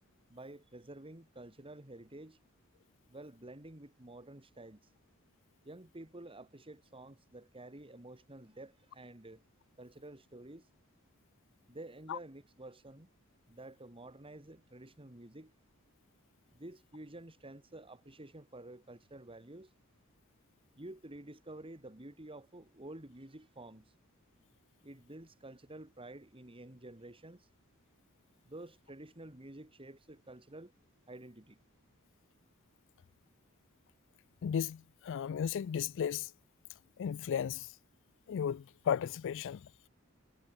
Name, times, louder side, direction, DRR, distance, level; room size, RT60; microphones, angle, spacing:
voice 1, 0.3-2.4 3.1-4.9 5.6-9.4 9.8-10.7 11.7-13.1 13.5-15.5 16.5-19.7 20.8-23.9 24.8-27.5 28.5-30.7 31.1-31.6, right 1 dB, 25° right, 2.5 m, -50 dB
voice 2, 34.4-36.3 37.0-37.7 38.3-39.9, left 8 dB, 60° left, 0.3 m, -35 dB
head